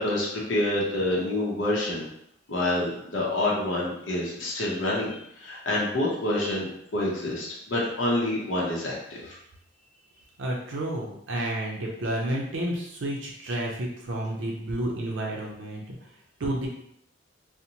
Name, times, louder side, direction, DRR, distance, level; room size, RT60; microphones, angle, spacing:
voice 1, 0.0-2.0 2.5-6.7 6.9-9.4, left 1 dB, 70° left, -4 dB, 0.6 m, -27 dB
voice 2, 10.4-16.0 16.4-16.7, right 1 dB, 70° right, -2 dB, 0.5 m, -30 dB
2.6 x 2.0 x 2.8 m, 0.74 s
head